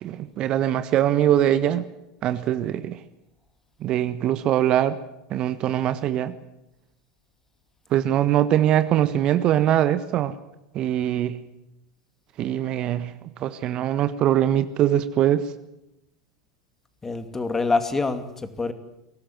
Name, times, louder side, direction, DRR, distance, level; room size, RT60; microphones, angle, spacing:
voice 1, 0.0-1.8 2.2-3.0 3.8-5.0 5.3-6.3 7.9-10.4 10.7-11.4 12.4-15.5, right 11 dB, 40° right, 12 dB, 1.4 m, -22 dB
voice 2, 17.0-18.7, left 3 dB, 15° left, 9 dB, 2.6 m, -25 dB
23.5 x 18.0 x 9.3 m, 0.91 s
figure-of-eight pair, 80°, 2 cm